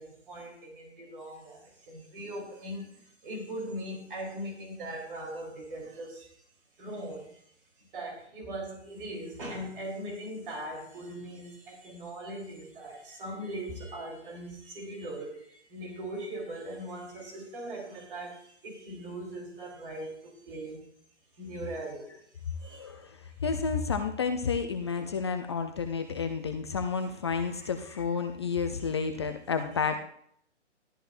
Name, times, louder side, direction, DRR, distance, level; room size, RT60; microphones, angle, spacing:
voice 1, 0.0-6.4 6.8-7.4 7.8-20.9 21.4-22.1 22.6-22.9 27.5-27.7, right 1 dB, 50° right, 0 dB, 3.5 m, -40 dB
voice 2, 22.6-30.0, left 5 dB, 25° left, 7 dB, 0.5 m, -31 dB
13.0 x 12.0 x 2.6 m, 0.65 s
figure-of-eight pair, 135°, 35 cm